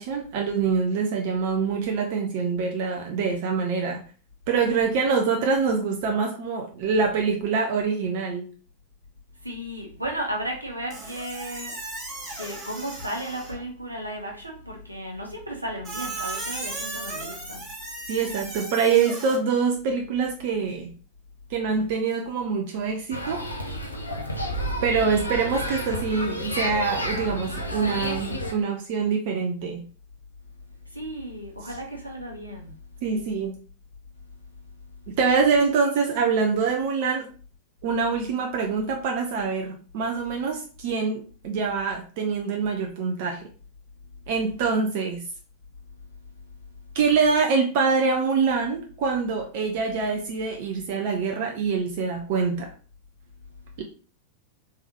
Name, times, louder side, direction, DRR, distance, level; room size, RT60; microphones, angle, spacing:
voice 1, 0.0-4.0 4.5-8.5 18.1-20.9 21.5-23.4 24.8-29.8 31.6-31.7 33.0-33.5 35.2-37.3 37.8-43.5 44.3-45.2 46.9-52.7 53.8-53.9, right 5 dB, 50° right, 2 dB, 0.6 m, -25 dB
voice 2, 9.4-11.7 12.4-17.6 30.9-32.7, right 1 dB, 85° right, 0 dB, 1.0 m, -34 dB
Squeak, 10.9-13.7 15.8-19.4, right 2 dB, 30° right, 1.9 m, -36 dB
sound 1, 23.1-28.5, equal, 80° left, 0.6 m, -30 dB
3.5 x 3.4 x 3.0 m, 0.39 s
figure-of-eight pair, 90°, 0 cm